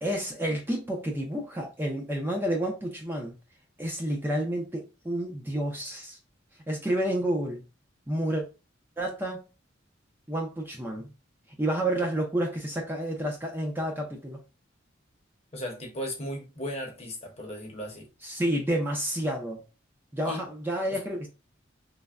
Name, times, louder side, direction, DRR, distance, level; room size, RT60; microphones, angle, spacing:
voice 1, 0.0-3.3 3.8-6.2 6.7-7.6 8.1-8.4 9.0-9.4 10.3-11.1 11.6-14.4 18.2-19.6 20.1-21.3, right 1 dB, 10° right, 0.4 m, -30 dB
voice 2, 15.5-18.1 20.3-20.4 20.9-21.0, equal, 30° left, 0.7 m, -36 dB
3.2 x 2.1 x 2.4 m
head